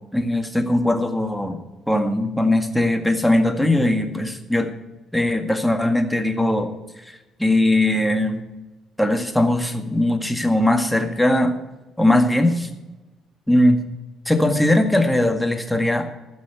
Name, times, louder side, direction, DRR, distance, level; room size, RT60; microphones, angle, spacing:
voice 1, 0.1-1.6 1.9-4.7 5.1-6.7 7.0-8.4 9.0-11.6 12.0-12.7 13.5-13.8 14.3-16.1, left 1 dB, 5° left, 5 dB, 1.9 m, -20 dB
14.5 x 6.3 x 8.2 m, 1.1 s
hypercardioid pair, 50°, 0 cm